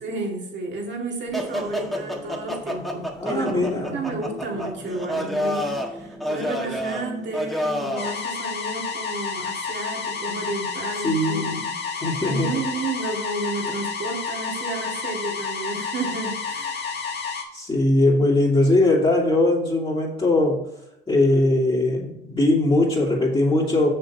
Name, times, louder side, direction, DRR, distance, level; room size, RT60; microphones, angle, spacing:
voice 1, 0.0-16.9, right 3 dB, 65° right, 0 dB, 2.5 m, -32 dB
sound 1, 1.3-8.1, equal, ahead, 1.5 m, -29 dB
voice 2, 3.2-4.2 11.0-12.7 17.5-20.6 21.1-23.9, left 2 dB, 25° left, -4 dB, 2.4 m, -21 dB
sound 2, 8.0-17.4, left 5 dB, 60° left, 1.5 m, -30 dB
6.7 x 6.6 x 4.1 m, 0.82 s
cardioid pair, 90°, 20 cm